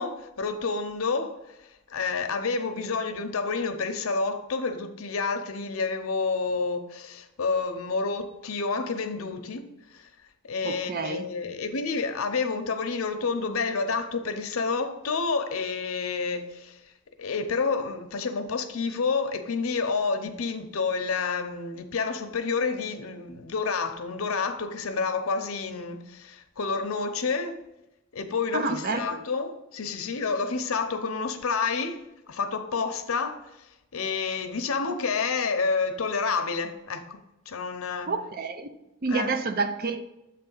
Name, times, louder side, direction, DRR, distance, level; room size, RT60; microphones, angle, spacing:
voice 1, 0.0-1.4 1.9-10.1 10.5-16.8 17.2-27.6 28.1-33.4 33.9-37.2 37.5-38.1 39.1-39.3, left 4 dB, 80° left, 0.7 m, -29 dB
voice 2, 10.6-11.3 28.5-29.2 38.1-38.7 39.0-40.0, right 4 dB, 45° right, 0.5 m, -29 dB
7.6 x 3.3 x 5.4 m
head